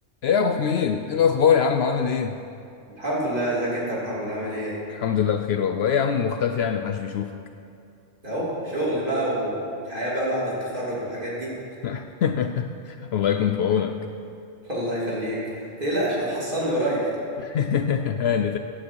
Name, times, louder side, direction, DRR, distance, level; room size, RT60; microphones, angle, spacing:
voice 1, 0.2-2.4 4.9-7.3 11.8-14.0 17.4-18.6, left 7 dB, 65° left, 7 dB, 0.7 m, -23 dB
voice 2, 2.9-4.8 8.2-9.6 9.8-11.5 14.6-17.1, right 1 dB, 45° right, -7 dB, 3.5 m, -27 dB
16.5 x 9.5 x 4.6 m, 2.6 s
omnidirectional pair, 1.3 m